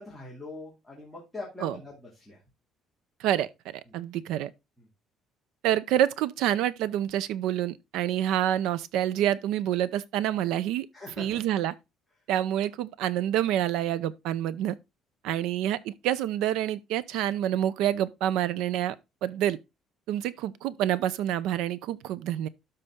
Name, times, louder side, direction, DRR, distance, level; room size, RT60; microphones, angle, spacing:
voice 1, 0.0-2.4 10.9-11.4, left 2 dB, 5° left, 2.3 m, -42 dB
voice 2, 3.2-4.5 5.6-10.9 11.2-11.7 12.3-14.8 15.2-19.0 19.2-19.6 20.1-22.5, right 12 dB, 90° right, 0.6 m, -27 dB
12.5 x 4.2 x 3.6 m
cardioid pair, 175°, 0 cm